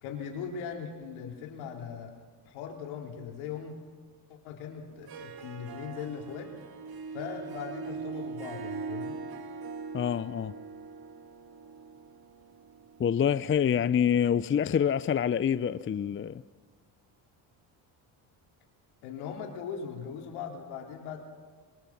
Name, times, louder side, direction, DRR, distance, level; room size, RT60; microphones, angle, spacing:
voice 1, 0.0-2.1 2.5-3.7 4.3-6.5 7.1-9.2 19.0-21.2, left 7 dB, 80° left, 3.7 m, -39 dB
Harp, 4.9-13.5, right 5 dB, 50° right, 2.3 m, -41 dB
voice 2, 9.9-10.5 13.0-16.4, left 8 dB, 25° left, 0.6 m, -26 dB
26.0 x 22.5 x 5.8 m
hypercardioid pair, 60°, 48 cm